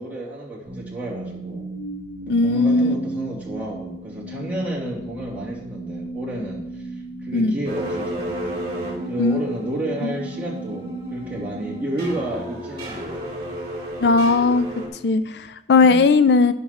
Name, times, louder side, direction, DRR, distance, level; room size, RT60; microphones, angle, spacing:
voice 1, 0.0-1.7 2.3-8.3 9.1-13.3 15.7-16.1, right 1 dB, 10° right, -7 dB, 2.9 m, -31 dB
sound 1, 0.7-12.8, right 3 dB, 45° left, 4.3 m, -35 dB
voice 2, 2.3-3.0 7.3-7.6 9.2-9.4 14.0-14.7 15.0-16.5, left 3 dB, 70° left, 13 dB, 0.4 m, -17 dB
sound 2, 7.6-14.9, equal, 30° right, 3.1 m, -33 dB
12.0 x 10.0 x 3.0 m, 0.85 s
head